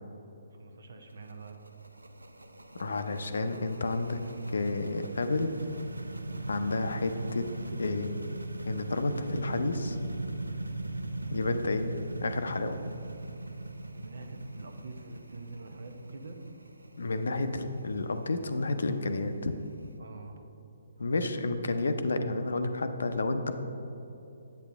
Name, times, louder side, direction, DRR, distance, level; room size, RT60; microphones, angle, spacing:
voice 1, 0.5-1.6 13.9-16.4 20.0-20.5, right 3 dB, 65° right, 5 dB, 0.8 m, -45 dB
sound 1, 1.1-19.9, right 2 dB, 90° right, 0.5 m, -40 dB
voice 2, 2.8-4.2 4.5-5.6 6.5-8.1 8.7-10.0 11.3-11.9 12.2-12.8 17.0-19.5 21.0-23.5, left 2 dB, 70° left, 9 dB, 0.6 m, -31 dB
8.3 x 8.1 x 3.5 m, 2.9 s
figure-of-eight pair, 135°, 0 cm